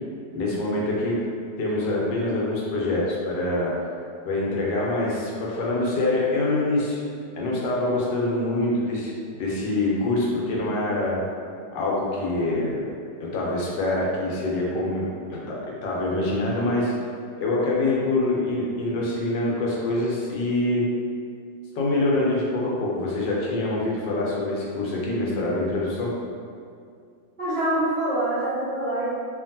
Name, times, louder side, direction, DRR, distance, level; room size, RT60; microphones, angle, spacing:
voice 1, 0.3-1.2 1.6-3.7 4.3-7.0 7.3-11.2 11.7-12.8 13.2-16.9 17.4-20.9 21.7-26.1, left 2 dB, 75° left, -4 dB, 1.2 m, -25 dB
voice 2, 27.4-29.0, right 1 dB, 55° right, -13 dB, 0.5 m, -25 dB
2.9 x 2.5 x 2.6 m, 2.3 s
omnidirectional pair, 2.0 m